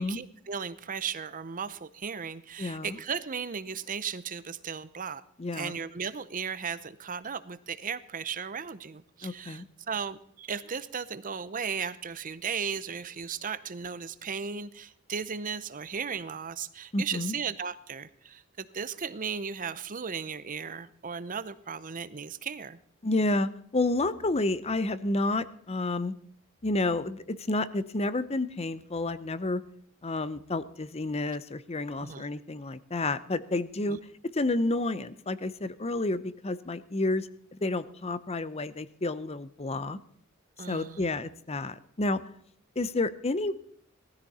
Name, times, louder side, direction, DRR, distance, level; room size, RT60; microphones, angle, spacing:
voice 1, 0.0-5.2 5.5-22.8 32.0-32.3 33.9-34.0 40.6-41.1, right 6 dB, 40° right, 15 dB, 0.7 m, -36 dB
voice 2, 2.6-3.0 5.4-5.8 9.2-9.6 16.9-17.3 23.0-26.1 26.6-29.6 30.0-34.0 34.3-40.0 40.7-42.2 42.8-43.5, left 2 dB, 30° left, 15 dB, 0.7 m, -30 dB
19.0 x 14.0 x 4.2 m, 0.65 s
head